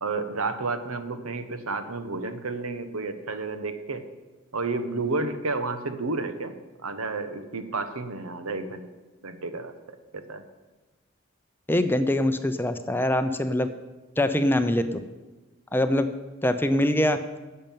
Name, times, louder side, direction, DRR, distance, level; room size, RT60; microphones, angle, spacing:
voice 1, 0.0-4.0 4.5-6.6 6.8-8.9 9.2-9.7 10.1-10.5, right 3 dB, 90° right, 9 dB, 1.1 m, -31 dB
voice 2, 11.7-13.7 14.2-15.0 15.7-16.1 16.4-17.2, left 1 dB, 10° left, 9 dB, 0.5 m, -23 dB
11.0 x 6.7 x 9.0 m, 1.2 s
head